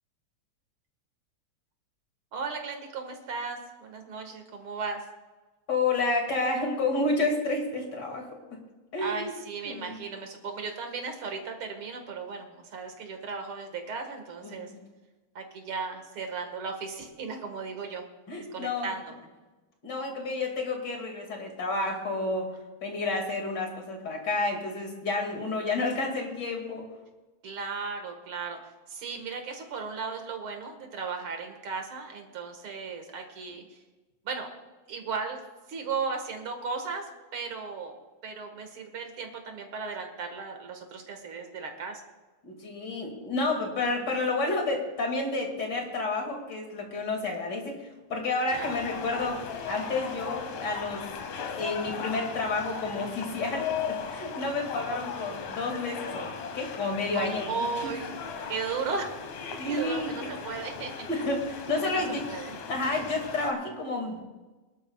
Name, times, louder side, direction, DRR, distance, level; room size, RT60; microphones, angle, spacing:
voice 1, 2.3-5.1 9.0-14.7 15.3-18.1 18.5-19.0 27.4-28.6 28.9-33.8 34.2-34.5 34.9-35.4 35.7-37.1 37.3-38.0 38.2-42.0 48.5-48.7 57.1-58.2 58.5-59.2 59.7-61.2 61.8-62.6, right 4 dB, 50° right, 4 dB, 2.4 m, -36 dB
voice 2, 5.7-8.6 8.9-9.3 9.6-10.0 14.4-14.8 18.3-18.9 19.8-26.9 42.4-51.1 51.4-57.5 57.8-57.9 59.6-60.2 61.1-62.2 62.7-64.2, left 3 dB, 35° left, 2 dB, 2.7 m, -30 dB
sound 1, 48.5-63.5, left 6 dB, 75° left, 2.5 m, -37 dB
22.5 x 12.0 x 2.4 m, 1.2 s
omnidirectional pair, 3.4 m